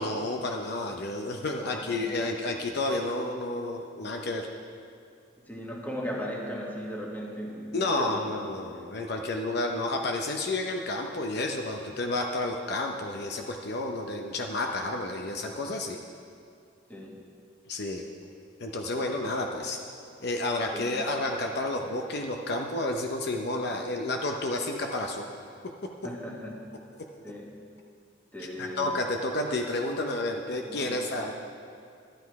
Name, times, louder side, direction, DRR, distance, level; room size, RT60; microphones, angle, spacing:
voice 1, 0.0-4.5 7.7-16.0 17.7-18.1 18.6-19.8 20.2-25.3 28.6-31.3, left 2 dB, 60° left, 2 dB, 0.7 m, -30 dB
voice 2, 1.6-2.1 5.4-8.3 16.9-17.2 19.2-19.3 20.7-21.0 26.0-26.6 27.2-27.6 28.3-28.9 30.7-31.3, equal, 10° left, -2 dB, 1.6 m, -38 dB
12.5 x 10.5 x 4.7 m, 2.3 s
head